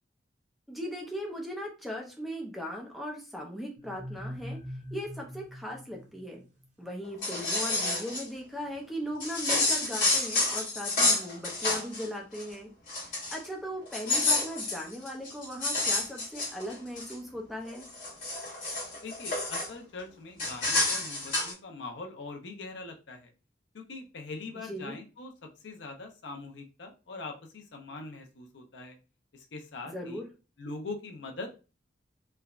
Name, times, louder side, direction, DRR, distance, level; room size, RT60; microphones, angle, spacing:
voice 1, 0.7-4.6 4.9-6.4 6.8-12.7 13.0-17.9 24.7-25.0 29.9-30.3, equal, ahead, -1 dB, 0.5 m, -38 dB
sound 1, 3.8-6.6, equal, 40° right, 0.6 m, -42 dB
sound 2, 7.0-8.2 9.2-12.0 12.3-12.5 12.9-13.5 13.9-17.1 17.6-19.7 20.4-21.5, left 2 dB, 50° left, 1.2 m, -29 dB
voice 2, 19.0-23.3 23.7-25.3 25.6-29.0 29.3-30.2 30.6-31.5, left 3 dB, 75° left, 3 dB, 0.6 m, -42 dB
3.3 x 2.1 x 2.3 m, 0.31 s
head